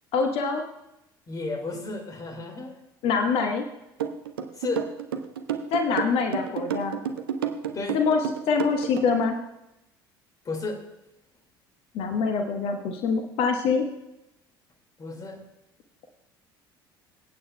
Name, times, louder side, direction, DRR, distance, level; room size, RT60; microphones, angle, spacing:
voice 1, 0.1-0.6 3.0-3.7 5.7-7.0 7.9-8.2 8.5-9.4 11.9-13.8, left 5 dB, 50° left, 5 dB, 1.1 m, -24 dB
voice 2, 1.3-2.8 4.5-4.9 7.7-8.0 10.5-10.8 15.0-15.4, left 3 dB, 30° left, 5 dB, 2.2 m, -33 dB
sound 1, 4.0-9.3, right 8 dB, 70° right, 0.8 m, -30 dB
25.5 x 8.8 x 2.3 m, 0.90 s
figure-of-eight pair, 60°, 12 cm